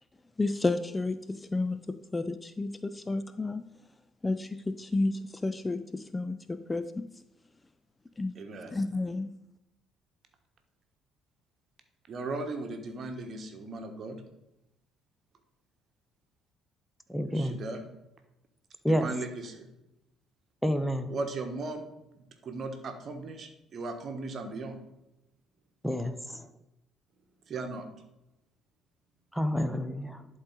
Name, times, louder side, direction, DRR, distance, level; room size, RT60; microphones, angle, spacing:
voice 1, 0.4-3.6 4.2-7.0 8.2-8.3 8.7-9.3, left 2 dB, 20° left, 12 dB, 0.4 m, -31 dB
voice 2, 8.3-8.7 12.1-14.2 17.3-17.8 18.9-19.7 21.1-21.8 22.4-24.8 27.5-27.9, right 3 dB, 45° right, 6 dB, 1.2 m, -37 dB
voice 3, 17.1-17.6 18.8-19.1 20.6-21.1 25.8-26.5 29.3-30.3, equal, 5° left, 9 dB, 0.8 m, -29 dB
11.5 x 4.0 x 4.0 m, 0.90 s
figure-of-eight pair, 50°, 0 cm